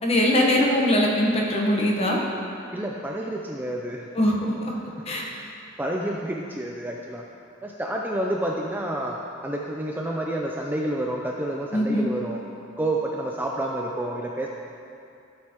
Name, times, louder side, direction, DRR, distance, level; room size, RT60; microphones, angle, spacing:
voice 1, 0.0-2.2 4.1-4.7 5.1-5.2 11.7-12.1, left 1 dB, 30° left, -2 dB, 1.1 m, -22 dB
voice 2, 2.7-4.1 5.4-5.5 5.8-7.2 7.6-12.4 12.8-14.5, right 1 dB, 10° right, -1 dB, 0.4 m, -29 dB
12.5 x 6.5 x 2.9 m, 2.5 s
head